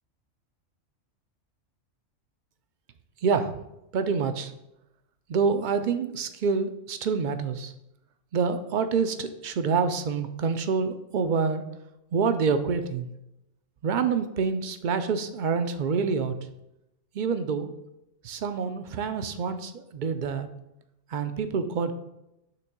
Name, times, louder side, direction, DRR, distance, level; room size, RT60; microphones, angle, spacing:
voice 1, 3.2-3.6 3.9-4.5 5.3-7.7 8.3-11.6 12.1-13.1 13.8-16.3 17.1-17.7 18.2-20.5 21.1-21.9, right 5 dB, 60° right, 9 dB, 0.5 m, -27 dB
5.9 x 3.5 x 5.9 m, 0.88 s
omnidirectional pair, 1.3 m